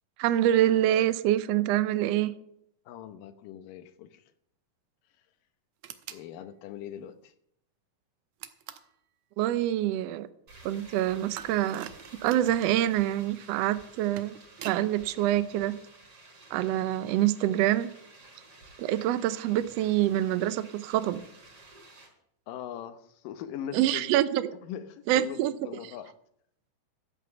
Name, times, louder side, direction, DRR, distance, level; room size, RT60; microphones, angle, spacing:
voice 1, 0.2-2.3 9.4-10.3 10.6-11.9 12.2-14.3 14.6-15.8 16.5-17.9 18.8-21.2 23.7-24.5 25.1-25.5, right 13 dB, 90° right, 1.4 m, -26 dB
voice 2, 2.9-4.2 6.1-7.3 22.5-24.1 24.6-26.1, left 10 dB, 90° left, 2.6 m, -41 dB
sound 1, 5.8-6.3 8.4-8.9 11.4-12.8 13.9-14.8, right 10 dB, 70° right, 1.9 m, -44 dB
sound 2, 10.5-22.1, right 2 dB, 45° right, 5.0 m, -53 dB
13.0 x 8.7 x 6.9 m
omnidirectional pair, 3.8 m